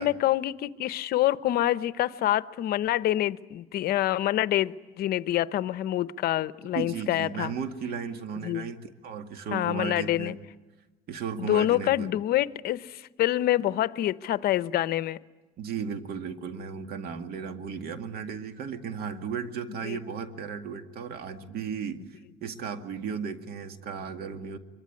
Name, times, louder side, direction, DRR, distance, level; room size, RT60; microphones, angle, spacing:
voice 1, 0.0-7.5 8.4-8.7 9.5-10.3 11.4-15.2 19.8-20.0, left 13 dB, 65° left, 15 dB, 0.8 m, -26 dB
voice 2, 6.8-10.3 11.1-12.1 15.6-22.0 22.4-24.6, right 6 dB, 65° right, 7 dB, 2.1 m, -35 dB
24.5 x 23.5 x 9.7 m, 1.2 s
cardioid pair, 120°, 17 cm